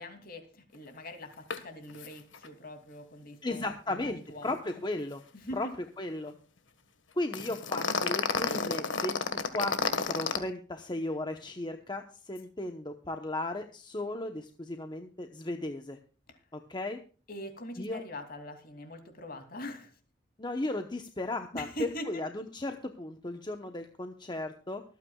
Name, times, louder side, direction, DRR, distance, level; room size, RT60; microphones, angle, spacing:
voice 1, 0.0-4.8 5.3-5.6 6.3-6.4 17.3-19.9 21.5-22.2, left 1 dB, 50° left, 6 dB, 2.8 m, -42 dB
sound 1, 1.5-1.6 1.9-2.1 2.3-2.5 7.3-10.4, left 4 dB, 80° left, 1.6 m, -30 dB
voice 2, 3.4-5.2 5.5-5.7 6.0-6.3 7.2-9.2 9.5-9.8 10.1-16.0 16.5-17.0 17.8-18.0 20.4-21.7 22.1-24.8, left 2 dB, 25° left, 6 dB, 1.0 m, -35 dB
24.5 x 9.1 x 2.4 m, 0.37 s
head